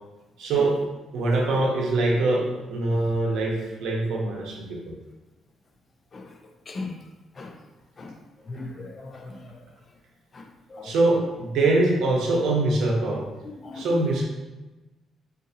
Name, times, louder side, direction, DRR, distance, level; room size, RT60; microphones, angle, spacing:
voice 1, 0.4-0.8 1.1-4.9 10.8-13.3 13.7-14.2, right 2 dB, 90° right, -1 dB, 0.7 m, -23 dB
voice 2, 6.7-7.0 7.4-7.5 8.0-8.1 8.5-9.4 10.3-10.4 10.7-10.9 13.6-13.9, left 3 dB, 30° left, 4 dB, 0.3 m, -37 dB
3.7 x 2.5 x 2.7 m, 1.1 s
cardioid pair, 155°, 0 cm